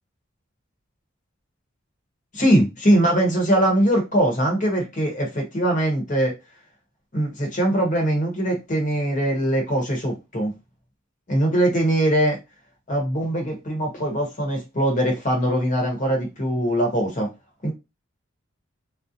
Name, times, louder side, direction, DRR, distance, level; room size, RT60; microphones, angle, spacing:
voice 1, 2.3-6.3 7.1-10.5 11.3-12.4 12.9-17.3 17.6-17.7, right 1 dB, 40° left, 1 dB, 0.9 m, -21 dB
2.5 x 2.0 x 2.7 m, 0.24 s
head